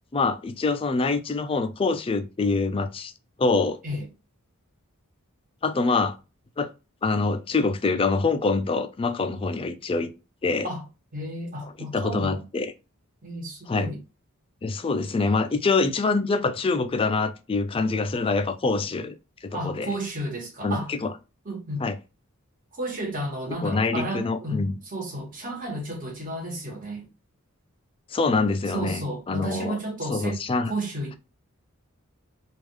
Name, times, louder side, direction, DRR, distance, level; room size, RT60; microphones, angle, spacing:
voice 1, 0.1-3.1 3.4-3.8 5.6-6.1 6.6-6.7 7.0-10.1 10.4-10.7 11.9-12.7 13.7-13.9 14.6-19.2 19.4-20.0 20.6-21.1 21.8-21.9 23.6-24.7 28.1-29.8 30.1-30.7, left 3 dB, 25° left, 0.4 m, -25 dB
voice 2, 11.1-12.5 13.2-14.0 19.5-20.9 21.4-21.9 22.7-27.1 28.7-31.2, right 1 dB, 40° right, 1.4 m, -32 dB
3.5 x 2.4 x 3.1 m
head